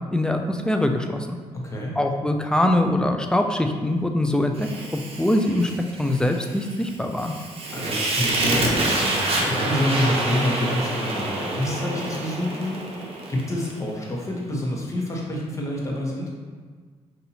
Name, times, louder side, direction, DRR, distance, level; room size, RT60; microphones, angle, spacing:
voice 1, 0.1-1.4 2.0-4.7 5.2-5.7 6.0-7.3, left 1 dB, 5° left, 4 dB, 0.4 m, -23 dB
voice 2, 1.5-2.0 7.7-12.8 13.3-16.3, left 1 dB, 25° left, -3 dB, 1.0 m, -27 dB
Fire, 4.6-13.8, right 2 dB, 55° right, 0.9 m, -27 dB
5.4 x 2.6 x 2.8 m, 1.5 s
cardioid pair, 80°, 12 cm